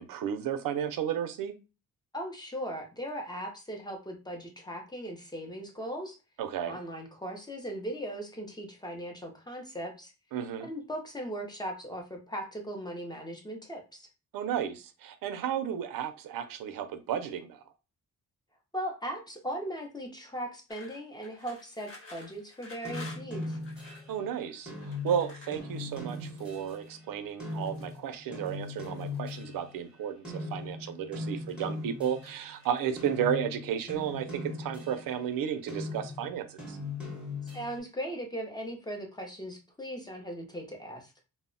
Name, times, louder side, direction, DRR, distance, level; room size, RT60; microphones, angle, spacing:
voice 1, 0.0-1.5 6.4-6.8 10.3-10.7 14.3-17.6 24.1-24.7 25.0-36.8, right 9 dB, 80° right, 0.5 m, -33 dB
voice 2, 2.1-6.2 6.6-10.1 10.7-14.1 18.7-23.6 37.5-41.1, equal, 15° left, 0.5 m, -38 dB
sound 1, 20.7-24.1 24.8-26.9 27.4-28.0 28.4-29.4 30.2-30.9 31.2-31.8 32.2-33.0, left 2 dB, 40° left, 0.9 m, -52 dB
sound 2, 22.8-30.0 30.2-32.6 33.0-35.2 35.7-37.8, left 2 dB, 5° right, 0.8 m, -39 dB
2.0 x 2.0 x 3.7 m
wide cardioid pair, 145°, 34 cm